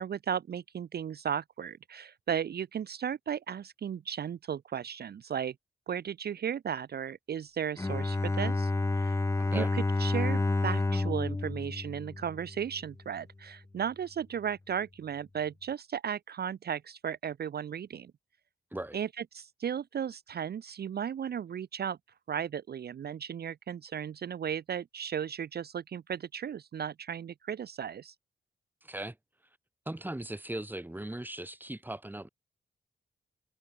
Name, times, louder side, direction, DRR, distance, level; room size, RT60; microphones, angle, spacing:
voice 1, 0.0-5.5 5.9-9.2 9.5-18.1 18.9-22.0 22.3-28.1, right 8 dB, 55° right, 0.6 m, -35 dB
Bowed string instrument, 7.8-12.7, left 2 dB, 15° left, 0.6 m, -30 dB
voice 2, 9.4-9.7 18.7-19.0 28.8-29.2 29.9-32.3, right 1 dB, 10° right, 2.3 m, -38 dB
wide cardioid pair, 100°, 20 cm